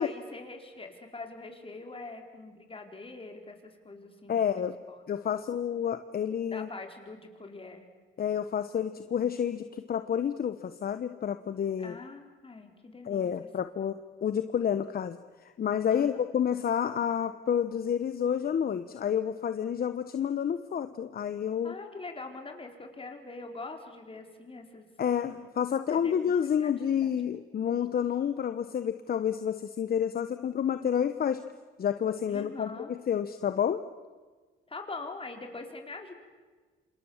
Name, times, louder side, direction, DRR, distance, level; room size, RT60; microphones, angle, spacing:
voice 1, 0.0-5.0 6.5-7.9 11.8-13.3 15.9-16.2 21.6-24.9 25.9-26.3 26.6-26.7 27.0-27.1 32.3-32.9 34.7-36.1, left 3 dB, 25° left, 4 dB, 4.7 m, -43 dB
voice 2, 4.3-4.7 5.1-6.7 8.2-11.9 13.0-21.8 25.0-31.4 31.8-33.8, left 8 dB, 50° left, 10 dB, 1.1 m, -29 dB
27.5 x 27.0 x 7.4 m, 1.4 s
cardioid pair, 90°, 20 cm